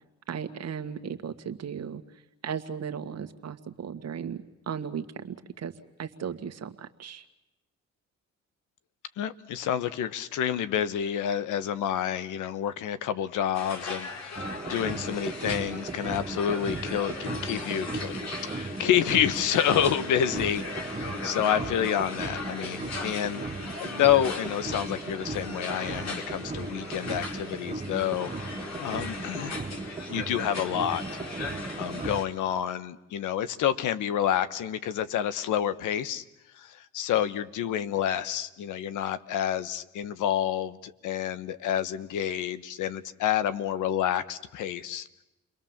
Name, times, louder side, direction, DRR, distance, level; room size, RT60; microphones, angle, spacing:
voice 1, 0.3-2.0 2.4-5.7 6.0-7.2, right 7 dB, 55° right, 8 dB, 1.9 m, -36 dB
voice 2, 9.2-23.4 23.8-28.3 28.8-29.6 30.1-31.0 31.7-36.2 36.5-45.1, left 10 dB, 85° left, 14 dB, 1.2 m, -28 dB
sound 1, 13.5-32.2, left 3 dB, 60° left, 4.2 m, -39 dB
sound 2, 14.4-32.2, right 3 dB, 20° right, 1.3 m, -37 dB
30.0 x 22.0 x 7.4 m, 0.96 s
cardioid pair, 90°, 30 cm